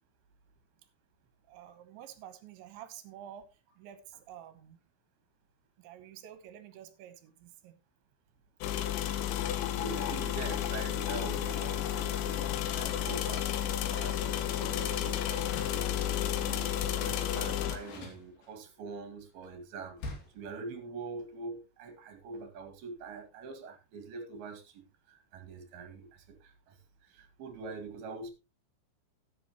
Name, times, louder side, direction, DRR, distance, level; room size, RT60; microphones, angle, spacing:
voice 1, 1.5-3.5 3.8-4.8 5.8-7.8, right 10 dB, 75° right, 3.4 m, -49 dB
sound 1, 8.6-17.8, left 11 dB, 80° left, 3.3 m, -32 dB
voice 2, 9.7-15.9 16.4-20.0 20.3-24.8 25.1-26.8 27.0-28.3, right 4 dB, 60° right, 3.8 m, -44 dB
Door, 15.4-15.9 17.1-18.8 20.0-20.5, left 3 dB, 55° left, 3.9 m, -45 dB
13.0 x 10.5 x 3.0 m
omnidirectional pair, 5.4 m